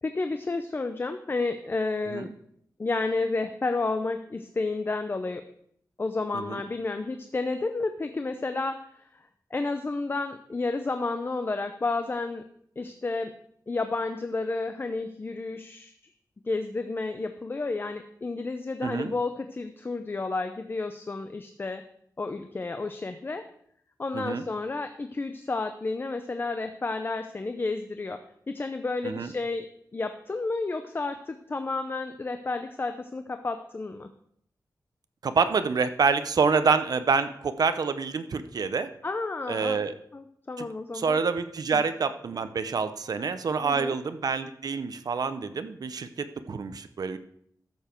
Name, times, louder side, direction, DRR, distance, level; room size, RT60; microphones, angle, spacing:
voice 1, 0.0-2.3 2.8-5.4 6.0-9.0 9.5-12.4 12.8-13.3 13.7-15.9 16.5-21.8 22.2-23.4 24.0-28.2 28.5-29.7 29.9-34.1 39.0-39.8 40.1-41.2 41.7-41.8 43.6-43.9, left 3 dB, 30° left, 8 dB, 0.6 m, -31 dB
voice 2, 18.8-19.1 24.1-24.4 29.0-29.3 35.2-38.9 39.5-39.9 40.6-40.7 40.9-47.2, right 5 dB, 65° right, 11 dB, 0.8 m, -27 dB
13.5 x 7.1 x 4.5 m, 0.67 s
wide cardioid pair, 140°, 7 cm